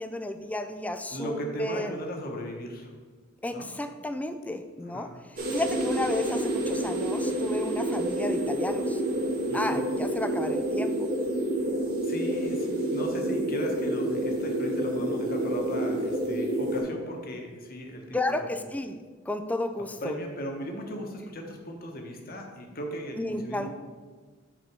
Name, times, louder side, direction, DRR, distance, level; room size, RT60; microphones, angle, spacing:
voice 1, 0.0-1.9 3.4-5.1 5.5-9.0 9.5-11.1 18.1-19.0 19.3-20.1 23.2-23.7, left 2 dB, 5° left, 8 dB, 0.3 m, -32 dB
voice 2, 1.1-2.9 3.5-3.7 4.8-5.1 9.5-9.8 12.0-18.5 20.0-23.7, equal, 45° left, 2 dB, 1.1 m, -37 dB
sound 1, 5.4-16.8, right 1 dB, 45° right, 1.8 m, -28 dB
6.1 x 4.1 x 6.1 m, 1.5 s
head